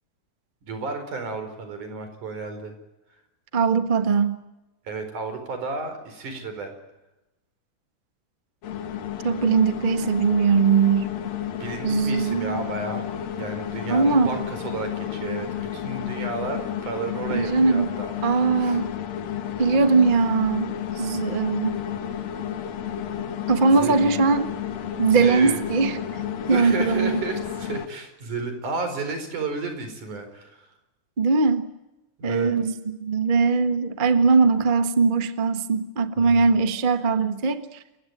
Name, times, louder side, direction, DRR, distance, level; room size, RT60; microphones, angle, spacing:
voice 1, 0.6-2.7 4.9-6.7 11.5-13.1 13.4-18.1 18.6-18.8 23.7-24.2 25.1-25.6 26.4-30.7 32.2-32.5 36.2-36.5, right 4 dB, 75° right, 7 dB, 5.9 m, -32 dB
voice 2, 3.5-4.4 9.2-11.1 11.8-12.6 13.9-14.4 17.3-17.9 18.2-18.9 19.6-21.7 23.5-24.5 25.0-26.0 26.5-27.2 31.2-31.6 32.2-32.7 33.0-37.8, right 4 dB, 45° right, 9 dB, 0.6 m, -20 dB
sound 1, 8.6-27.9, left 9 dB, 65° left, 2.5 m, -32 dB
28.5 x 16.5 x 9.4 m, 0.98 s
omnidirectional pair, 3.6 m